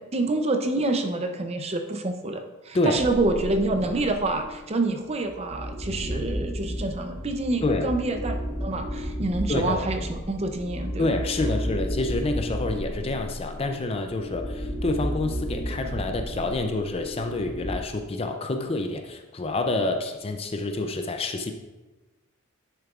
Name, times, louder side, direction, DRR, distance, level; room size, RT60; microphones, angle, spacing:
voice 1, 0.1-8.3 8.6-11.1, right 2 dB, 30° right, 6 dB, 0.5 m, -27 dB
sound 1, 2.9-4.6 5.2-17.8, equal, 60° left, 2.0 m, -33 dB
voice 2, 9.5-9.8 11.0-21.5, left 2 dB, 25° left, 6 dB, 0.4 m, -28 dB
10.5 x 6.5 x 2.4 m, 1.2 s
head